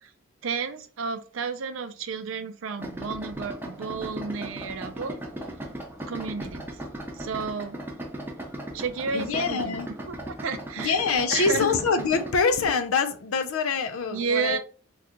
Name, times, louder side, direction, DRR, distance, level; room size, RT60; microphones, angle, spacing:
voice 1, 0.4-5.2 6.1-6.6 7.2-7.8 8.7-9.8 10.1-11.0 11.3-11.7 14.1-14.6, right 5 dB, 75° right, 0.5 m, -31 dB
Idling, 2.8-12.3, right 1 dB, 10° right, 0.4 m, -37 dB
voice 2, 9.1-9.9 10.8-14.6, left 5 dB, 85° left, 0.5 m, -25 dB
2.8 x 2.3 x 3.6 m
head